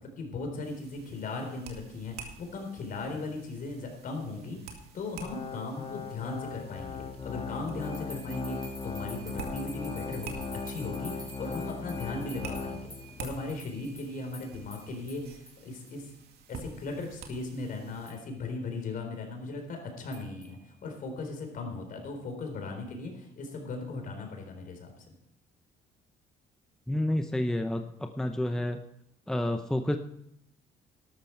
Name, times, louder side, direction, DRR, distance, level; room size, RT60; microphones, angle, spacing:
voice 1, 0.0-16.2 16.5-24.9, left 3 dB, 55° left, 4 dB, 4.0 m, -38 dB
sound 1, 0.6-18.1, right 5 dB, 75° right, 2.2 m, -49 dB
Organ, 5.2-13.3 13.7-13.8 14.4-14.5, left 4 dB, 30° left, 1.5 m, -38 dB
sound 2, 7.8-15.5 15.9-16.0 17.0-17.1 18.1-18.2 20.1-20.6, equal, 25° right, 5.8 m, -49 dB
voice 2, 26.9-28.8 29.3-30.0, left 1 dB, 5° left, 6 dB, 0.7 m, -29 dB
13.0 x 12.0 x 4.5 m, 0.79 s
cardioid pair, 110°, 17 cm